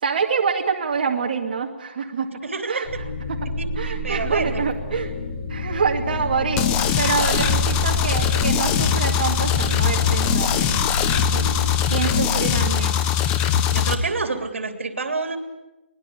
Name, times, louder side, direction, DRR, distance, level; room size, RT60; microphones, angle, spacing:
voice 1, 0.0-2.3 2.7-2.9 3.3-3.4 3.8-5.1 5.5-10.8 11.3-11.5 11.9-13.0 13.7-13.9, right 5 dB, 45° right, 1 dB, 2.3 m, -26 dB
voice 2, 2.4-3.0 3.6-4.6 13.7-15.4, right 3 dB, 85° right, 6 dB, 3.2 m, -28 dB
sound 1, 2.8-11.8, left 1 dB, 35° left, 6.5 m, -29 dB
sound 2, 6.6-13.9, left 9 dB, 15° left, 1.0 m, -21 dB
24.0 x 19.5 x 8.4 m, 1.1 s
hypercardioid pair, 170°, 7 cm